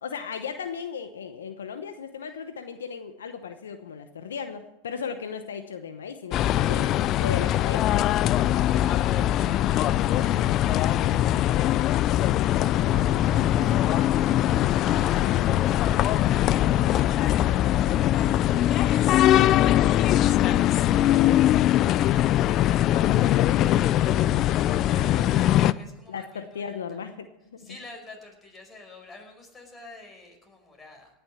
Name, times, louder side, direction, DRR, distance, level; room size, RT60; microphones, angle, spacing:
voice 1, 0.0-6.9 7.2-8.1 19.2-19.5 22.9-23.6 24.9-25.4 26.1-27.8, left 6 dB, 85° left, 8 dB, 0.9 m, -36 dB
sound 1, 6.3-25.7, left 13 dB, 45° left, 0.4 m, -21 dB
voice 2, 8.7-21.9 22.4-27.0 27.6-31.1, left 2 dB, 20° left, 2 dB, 5.1 m, -51 dB
18.0 x 6.9 x 7.2 m, 0.90 s
hypercardioid pair, 100°, 0 cm